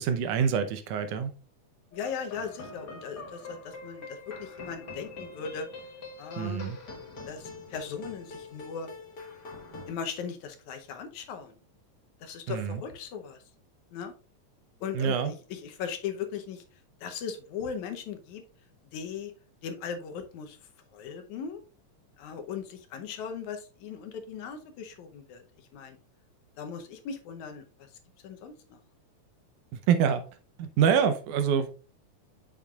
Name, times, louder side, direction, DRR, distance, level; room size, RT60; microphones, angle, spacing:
voice 1, 0.0-1.3 6.4-6.8 12.5-12.8 14.9-15.3 29.7-30.2 30.6-31.7, right 7 dB, 80° right, 2.2 m, -26 dB
voice 2, 1.9-5.7 6.2-6.7 7.3-8.9 9.9-11.6 12.2-13.4 13.9-14.1 14.8-16.6 17.0-18.4 18.9-19.3 19.6-20.6 20.9-21.6 22.2-25.4 25.7-26.0 26.6-27.6 28.2-28.8, left 6 dB, 75° left, 2.1 m, -38 dB
sound 1, 1.9-9.9, left 3 dB, 45° left, 1.6 m, -44 dB
7.3 x 7.2 x 2.3 m
omnidirectional pair, 3.6 m